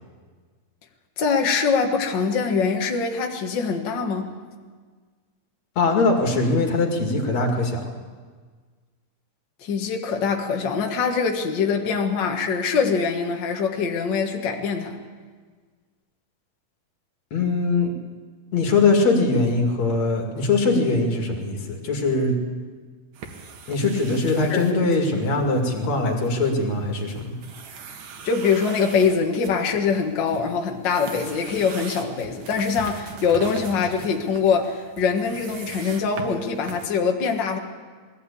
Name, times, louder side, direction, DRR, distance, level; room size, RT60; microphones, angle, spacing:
voice 1, 1.2-4.3 9.6-15.0 24.5-24.8 28.2-37.6, left 5 dB, 80° left, 2 dB, 1.0 m, -23 dB
voice 2, 5.8-7.8 17.3-17.9 18.5-22.3 23.7-27.4, left 3 dB, 45° left, 2 dB, 3.1 m, -21 dB
sound 1, 23.1-36.9, right 5 dB, 60° right, 2.9 m, -41 dB
20.5 x 15.0 x 8.5 m, 1.5 s
omnidirectional pair, 4.7 m